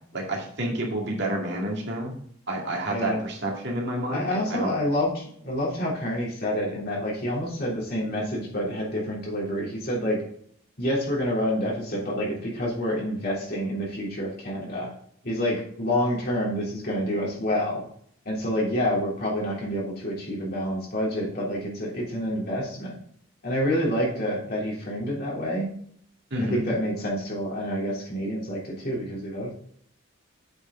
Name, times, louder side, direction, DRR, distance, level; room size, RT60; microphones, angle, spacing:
voice 1, 0.1-2.1 2.5-4.7 26.3-26.6, right 1 dB, 55° right, -1 dB, 2.2 m, -29 dB
voice 2, 2.9-3.2 4.0-10.2 10.8-14.9 15.2-17.8 18.2-22.9 23.4-25.7 26.4-29.5, equal, 50° left, -4 dB, 3.2 m, -28 dB
8.0 x 6.5 x 3.8 m, 0.64 s
head